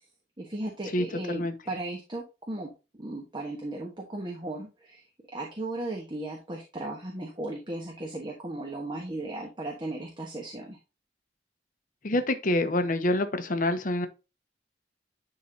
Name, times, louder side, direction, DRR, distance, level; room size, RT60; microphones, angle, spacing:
voice 1, 0.4-2.7 3.0-5.0 5.3-10.8, right 2 dB, 25° right, 1.3 m, -36 dB
voice 2, 0.9-1.5 12.0-14.1, left 1 dB, 50° left, 1.0 m, -27 dB
10.5 x 3.8 x 2.8 m
head